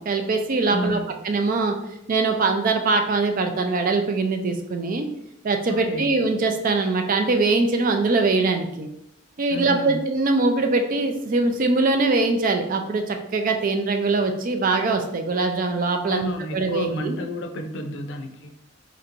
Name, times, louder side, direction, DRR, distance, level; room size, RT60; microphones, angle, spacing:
voice 1, 0.0-1.0 1.2-1.8 2.1-5.1 5.4-8.9 9.4-17.2, right 3 dB, 45° right, 5 dB, 0.4 m, -22 dB
voice 2, 0.7-1.2 5.7-6.1 9.5-10.0 16.0-18.5, left 1 dB, 70° left, 5 dB, 0.5 m, -31 dB
4.3 x 3.0 x 2.5 m, 0.80 s
head